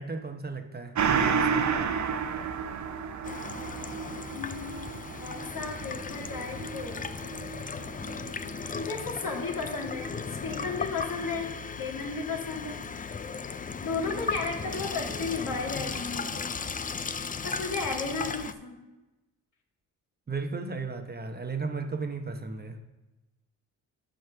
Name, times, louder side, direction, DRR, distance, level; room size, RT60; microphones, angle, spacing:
voice 1, 0.0-1.7 20.3-22.8, right 4 dB, 25° right, 5 dB, 0.9 m, -35 dB
Gong, 0.9-9.9 10.3-10.4, right 6 dB, 45° right, 0.9 m, -32 dB
Water tap faucet / Sink (filling or washing), 3.2-18.5, left 5 dB, 20° left, 0.5 m, -36 dB
voice 2, 4.3-4.9 5.2-7.0 8.7-10.1 10.4-11.5 11.8-12.8 13.8-16.5 17.4-18.8, left 4 dB, 55° left, 0 dB, 2.1 m, -34 dB
7.8 x 5.3 x 5.8 m, 1.1 s
supercardioid pair, 70°, 39 cm